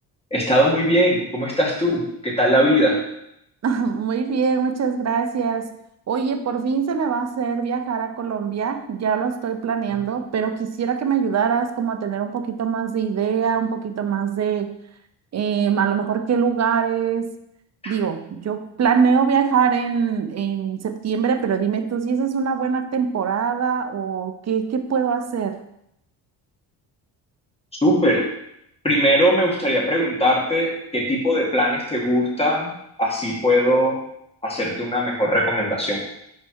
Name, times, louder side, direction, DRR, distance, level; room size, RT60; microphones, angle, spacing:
voice 1, 0.3-3.0 17.8-17.9 27.8-28.3 28.8-32.7 33.0-34.0 34.4-36.0, equal, 15° left, -2 dB, 1.8 m, -20 dB
voice 2, 3.6-5.8 6.1-14.8 15.3-17.4 17.9-25.6, right 6 dB, 35° right, 7 dB, 0.7 m, -23 dB
5.1 x 4.5 x 4.7 m, 0.77 s
cardioid pair, 90°, 44 cm